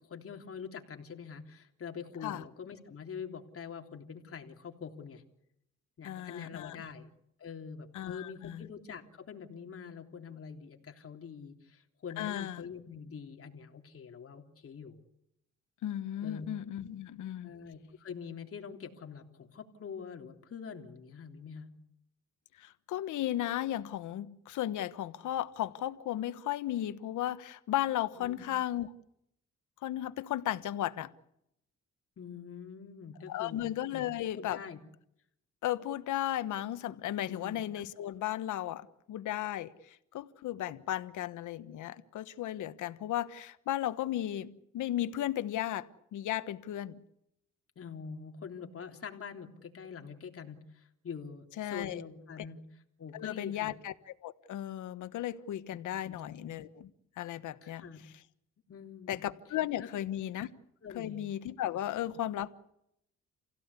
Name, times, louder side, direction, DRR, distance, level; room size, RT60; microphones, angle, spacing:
voice 1, 0.0-5.2 6.0-7.1 7.4-15.0 16.2-16.5 17.4-21.7 28.2-28.4 32.2-33.6 33.9-34.1 34.3-34.8 37.2-37.6 47.8-52.6 53.0-53.7 55.7-55.8 56.0-56.4 57.6-58.0 58.7-59.2 59.8-59.9 60.4-60.5 60.8-61.2 61.9-62.2, left 6 dB, 50° left, 3.5 m, -45 dB
voice 2, 6.0-6.9 7.9-8.7 12.2-12.6 15.8-17.5 22.6-28.9 29.8-31.1 33.3-34.6 35.6-47.0 51.6-52.0 52.4-52.5 53.1-56.9 57.2-57.8 59.1-60.5 60.9-62.5, left 12 dB, 80° left, 1.3 m, -35 dB
28.5 x 16.5 x 8.4 m
cardioid pair, 90°, 30 cm